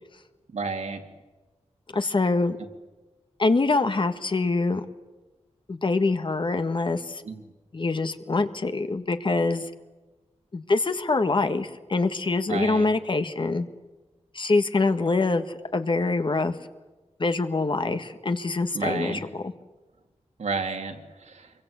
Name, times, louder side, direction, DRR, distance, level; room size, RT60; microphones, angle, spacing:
voice 1, 0.5-1.0 7.2-7.4 12.5-12.9 18.7-19.2 20.4-21.5, right 4 dB, 75° right, 4 dB, 2.7 m, -31 dB
voice 2, 1.9-2.6 3.4-4.8 5.7-7.2 7.7-9.7 10.5-13.7 14.3-16.5 17.2-19.5, left 3 dB, 45° left, 9 dB, 1.5 m, -25 dB
26.5 x 23.0 x 8.3 m, 1.2 s
wide cardioid pair, 100°, 12 cm